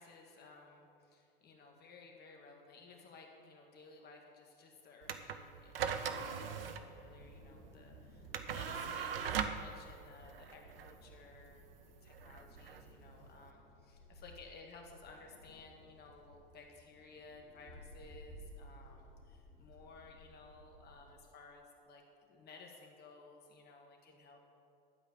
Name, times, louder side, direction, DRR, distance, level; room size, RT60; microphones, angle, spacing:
voice 1, 0.0-11.6 12.0-22.0 22.3-24.4, left 3 dB, 35° left, 2 dB, 1.9 m, -57 dB
sound 1, 5.0-13.5, right 7 dB, 75° right, 0.8 m, -41 dB
Wind, 7.0-21.2, left 1 dB, 65° left, 2.6 m, -58 dB
12.0 x 5.0 x 7.6 m, 2.6 s
figure-of-eight pair, 90°, 29 cm